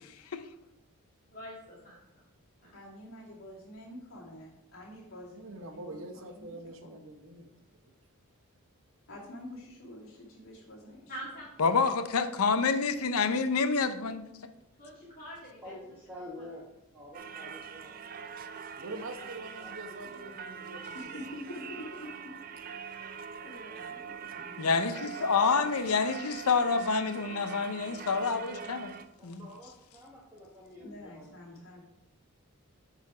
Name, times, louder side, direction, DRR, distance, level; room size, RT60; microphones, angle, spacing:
voice 1, 1.3-2.0 11.1-11.7 14.8-15.6 16.3-16.4, equal, 40° left, -5 dB, 2.1 m, -44 dB
voice 2, 2.7-6.9 9.1-11.2 20.9-22.3 22.8-24.6 30.8-31.8, left 1 dB, 65° left, -5 dB, 2.2 m, -47 dB
voice 3, 5.3-7.9 18.8-21.2, right 2 dB, 65° right, 6 dB, 0.9 m, -44 dB
voice 4, 11.6-14.3 24.6-28.9 29.2-29.5, left 5 dB, 85° left, 10 dB, 0.6 m, -27 dB
voice 5, 15.6-16.6 16.9-18.1 19.6-20.4 24.7-25.7 28.4-28.8 29.2-31.4 31.7-31.8, left 1 dB, 10° right, -7 dB, 1.1 m, -49 dB
Singing / Church bell, 17.1-29.1, right 6 dB, 40° right, 0.3 m, -43 dB
8.2 x 4.1 x 4.9 m, 0.89 s
head